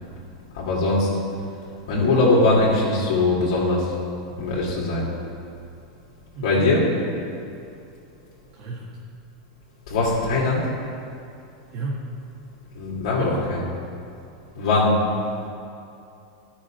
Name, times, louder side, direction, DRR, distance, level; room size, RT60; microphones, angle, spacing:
voice 1, 0.5-1.2 1.9-3.9 4.4-5.1 6.4-6.9 9.9-10.7 12.7-13.6 14.6-15.1, left 2 dB, 75° left, -6 dB, 2.0 m, -21 dB
voice 2, 6.3-6.7 8.5-8.9 11.7-12.0 13.2-13.5, right 2 dB, 50° right, -4 dB, 1.4 m, -32 dB
11.5 x 6.1 x 4.3 m, 2.6 s
supercardioid pair, 150°, 3 cm